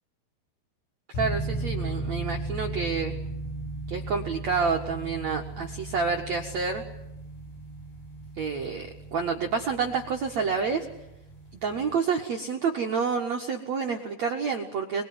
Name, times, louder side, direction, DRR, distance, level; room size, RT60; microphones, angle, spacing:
sound 1, 1.1-12.0, right 2 dB, 65° left, 7.6 m, -36 dB
voice 1, 1.1-3.2 3.9-6.8 8.4-10.8 11.6-15.0, right 5 dB, 85° right, 2 dB, 1.5 m, -28 dB
24.5 x 22.0 x 9.6 m, 0.88 s
omnidirectional pair, 5.9 m